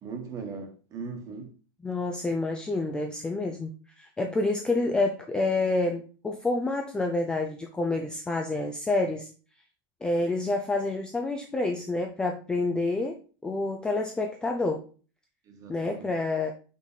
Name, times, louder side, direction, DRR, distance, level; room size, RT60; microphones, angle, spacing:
voice 1, 0.0-1.5 15.5-16.1, right 5 dB, 25° right, 1.3 m, -39 dB
voice 2, 1.8-3.7 4.0-9.3 10.0-14.8 15.7-16.5, left 2 dB, 5° left, 0.4 m, -28 dB
5.4 x 3.9 x 4.9 m
supercardioid pair, 165°, 13 cm